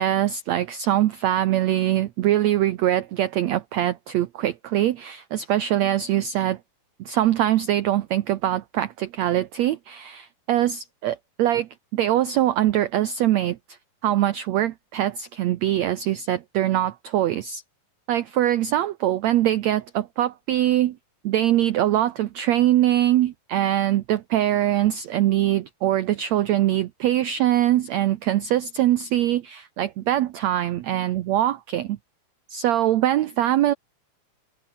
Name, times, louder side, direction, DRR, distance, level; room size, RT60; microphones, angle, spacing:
voice 1, 0.0-6.6 7.0-13.6 14.0-17.6 18.1-21.0 21.2-32.0 32.5-33.7, right 13 dB, 75° right, 1.6 m, -23 dB
omnidirectional pair, 4.2 m